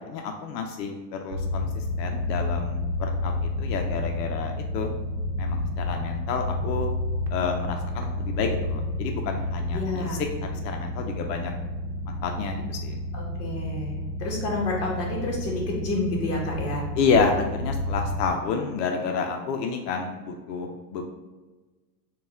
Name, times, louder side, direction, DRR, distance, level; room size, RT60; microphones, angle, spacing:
voice 1, 0.1-3.3 3.6-4.9 5.4-6.9 7.3-10.2 10.5-11.5 12.1-13.0 17.0-21.0, left 5 dB, 75° left, 3 dB, 0.6 m, -29 dB
sound 1, 1.3-18.3, left 1 dB, 75° right, 0.8 m, -30 dB
voice 2, 9.7-10.2 13.1-16.9, left 2 dB, 30° left, -2 dB, 1.0 m, -29 dB
4.1 x 2.4 x 3.4 m, 1.3 s
supercardioid pair, 145°, 49 cm